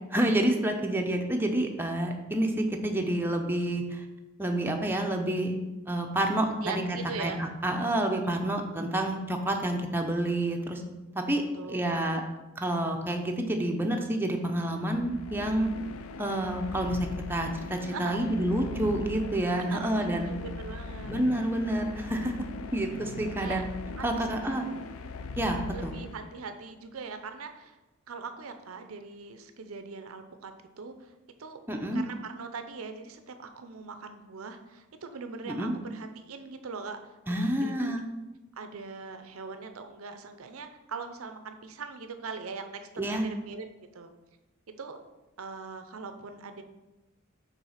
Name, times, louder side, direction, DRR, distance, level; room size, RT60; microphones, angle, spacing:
voice 1, 0.1-4.0 4.4-5.6 5.9-10.8 11.1-12.2 12.6-15.7 16.2-20.3 21.1-22.3 22.7-23.6 24.0-24.7 25.4-25.9 31.7-32.0 35.5-35.7 37.3-38.0 43.0-43.3, right 1 dB, 10° right, 2 dB, 0.6 m, -28 dB
voice 2, 6.6-7.4 8.3-8.4 11.5-12.2 17.9-18.2 19.6-21.1 23.4-23.6 24.0-24.6 25.7-27.8 28.1-31.1 31.4-31.6 31.9-37.0 37.3-37.9 38.6-42.8 43.1-43.7 43.9-44.1 44.7-45.0 45.4-46.6, right 4 dB, 85° right, 8 dB, 0.6 m, -41 dB
sound 1, 14.9-26.6, left 3 dB, 85° left, 0.4 m, -40 dB
5.7 x 4.1 x 5.6 m, 1.1 s
head